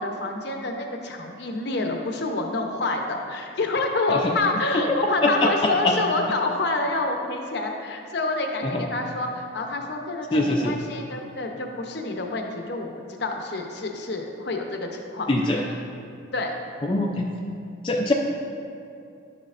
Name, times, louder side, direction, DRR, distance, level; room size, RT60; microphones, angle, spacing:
voice 1, 0.0-15.8 16.3-16.5, left 2 dB, 55° left, 2 dB, 0.7 m, -28 dB
voice 2, 10.3-10.7 15.3-15.6 16.9-17.3 17.8-18.1, left 2 dB, 25° left, -1 dB, 0.4 m, -22 dB
11.0 x 6.4 x 2.5 m, 2.5 s
head